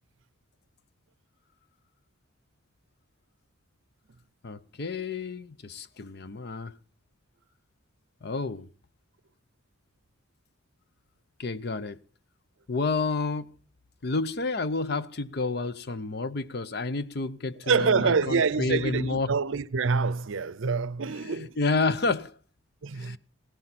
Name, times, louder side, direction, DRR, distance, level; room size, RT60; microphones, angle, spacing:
voice 1, 4.4-6.7 8.2-8.7 11.4-12.0 12.7-13.5 14.0-19.3 21.2-22.3 22.9-23.2, left 3 dB, 50° left, 0.7 m, -30 dB
voice 2, 17.6-21.6 22.8-23.2, right 5 dB, 70° right, 0.6 m, -26 dB
17.5 x 13.0 x 4.2 m
head